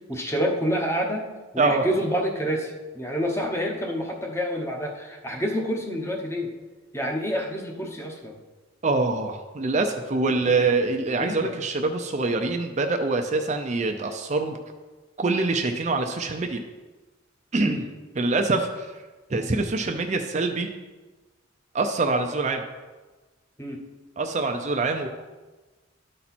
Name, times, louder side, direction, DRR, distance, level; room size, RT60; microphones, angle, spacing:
voice 1, 0.1-1.3 1.5-6.5 6.9-8.4 11.1-11.5 17.6-17.8 22.4-22.5 23.6-23.8, equal, 15° left, 1 dB, 0.9 m, -28 dB
voice 2, 8.8-14.6 15.2-16.6 17.5-17.9 18.1-19.0 19.3-20.7 21.7-22.6 24.2-25.1, right 3 dB, 35° right, 5 dB, 0.5 m, -25 dB
12.0 x 4.3 x 4.2 m, 1.3 s
head